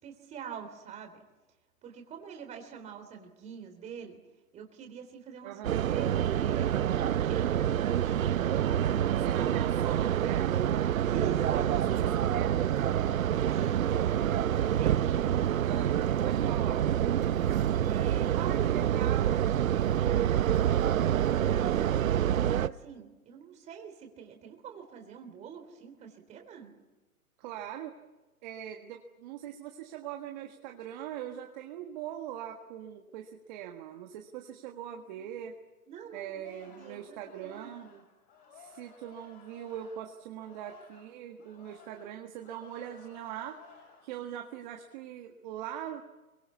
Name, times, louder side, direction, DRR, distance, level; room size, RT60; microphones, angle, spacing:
voice 1, 0.0-1.2 1.8-4.2 4.5-7.6 8.0-9.5 11.0-11.7 13.4-14.0 14.8-16.5 17.8-18.5 19.7-21.9 22.4-26.7 35.2-35.3 35.9-38.0, right 7 dB, 15° right, 4 dB, 3.5 m, -45 dB
voice 2, 5.4-5.9 9.2-10.7 11.5-12.5 15.6-16.8 18.3-19.4 27.4-27.9 28.4-35.6 36.1-37.9 38.5-46.0, right 10 dB, 30° right, 3 dB, 1.7 m, -41 dB
sound 1, 5.6-22.7, right 10 dB, 65° right, 0.9 m, -27 dB
Singing, 36.4-41.1 41.4-44.2 44.6-44.9, left 6 dB, 30° left, 6.5 m, -56 dB
25.0 x 23.5 x 8.3 m, 1.1 s
hypercardioid pair, 150°, 44 cm